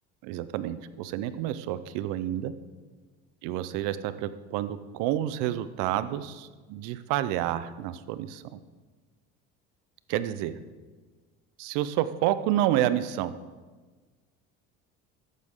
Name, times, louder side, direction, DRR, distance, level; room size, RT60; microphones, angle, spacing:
voice 1, 0.2-2.5 3.4-8.6 10.1-10.6 11.6-13.4, right 12 dB, 80° right, 14 dB, 0.7 m, -29 dB
13.5 x 9.4 x 3.7 m, 1.3 s
supercardioid pair, 85°, 30 cm